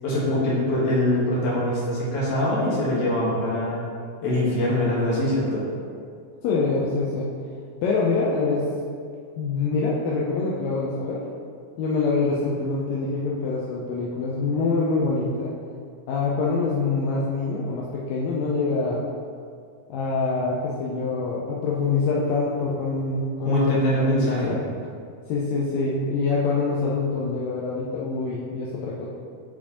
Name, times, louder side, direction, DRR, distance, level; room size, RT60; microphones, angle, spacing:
voice 1, 0.0-3.8 4.2-5.6 23.4-24.5, left 1 dB, 55° left, -6 dB, 2.1 m, -23 dB
voice 2, 6.4-7.3 7.8-8.7 9.4-11.2 11.8-15.5 16.1-19.0 19.9-24.6 25.3-29.1, left 3 dB, 80° left, -5 dB, 1.6 m, -25 dB
8.2 x 4.3 x 2.9 m, 2.2 s
omnidirectional pair, 3.7 m